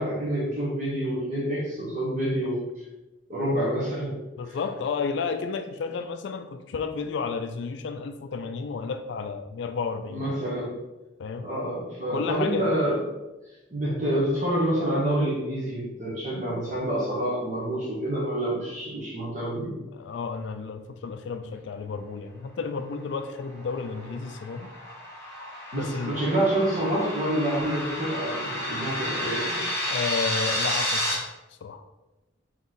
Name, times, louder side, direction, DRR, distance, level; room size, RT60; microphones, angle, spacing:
voice 1, 0.0-2.6 3.3-4.2 4.5-4.6 10.1-10.8 11.4-13.0 13.7-19.7 25.7-29.6, right 1 dB, 40° right, -7 dB, 1.1 m, -27 dB
voice 2, 4.4-10.3 11.2-11.5 12.1-12.7 13.8-14.1 19.9-24.7 25.7-26.2 29.1-29.5 29.9-31.3 31.6-31.8, left 5 dB, 65° left, 8 dB, 0.3 m, -32 dB
sound 1, 23.4-31.1, left 1 dB, 15° left, 1.2 m, -31 dB
4.0 x 3.0 x 3.8 m, 1.0 s
head